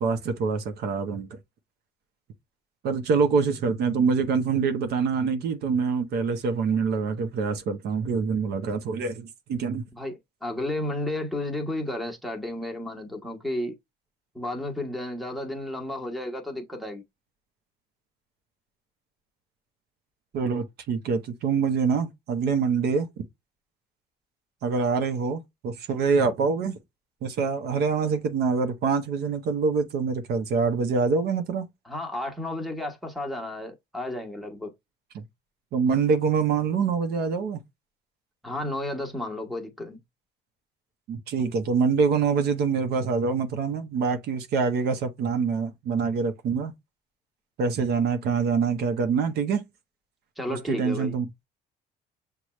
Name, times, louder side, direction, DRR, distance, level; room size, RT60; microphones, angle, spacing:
voice 1, 0.0-1.4 2.8-9.8 20.3-23.1 24.6-26.7 27.2-31.7 35.1-35.2 35.7-37.6 41.1-46.7 47.6-49.6 50.5-51.3, right 5 dB, 70° right, 0.8 m, -25 dB
voice 2, 10.0-13.8 14.3-17.0 31.9-34.7 38.4-40.0 50.4-51.2, left 1 dB, ahead, 1.1 m, -32 dB
6.3 x 2.3 x 3.0 m
cardioid pair, 110°, 17 cm